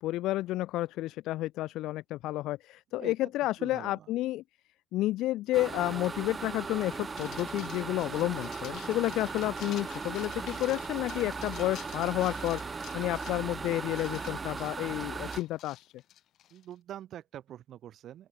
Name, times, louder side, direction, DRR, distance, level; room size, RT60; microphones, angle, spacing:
voice 1, 0.0-4.4 4.9-15.9, left 16 dB, 85° left, 0.9 m, -31 dB
voice 2, 3.6-4.1 16.5-18.3, right 11 dB, 55° right, 3.2 m, -45 dB
sound 1, 5.5-15.4, right 4 dB, 25° right, 0.9 m, -38 dB
sound 2, 7.2-16.7, left 12 dB, 60° left, 2.0 m, -50 dB
open air
cardioid pair, 150°, 0 cm